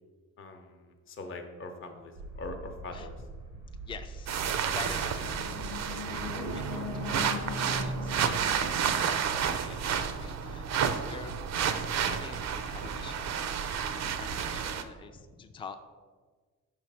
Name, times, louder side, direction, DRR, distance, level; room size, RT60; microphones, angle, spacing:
voice 1, 0.4-3.1, left 2 dB, 40° left, 4 dB, 0.7 m, -42 dB
sound 1, 2.1-14.7, right 2 dB, 85° right, 0.8 m, -43 dB
voice 2, 3.5-11.3 11.8-15.8, left 5 dB, 15° left, 7 dB, 0.4 m, -47 dB
sound 2, 4.3-14.8, right 7 dB, 60° right, 0.5 m, -31 dB
sound 3, 4.8-9.9, left 7 dB, 85° left, 0.6 m, -42 dB
5.8 x 3.2 x 5.4 m, 1.4 s
cardioid pair, 90°, 30 cm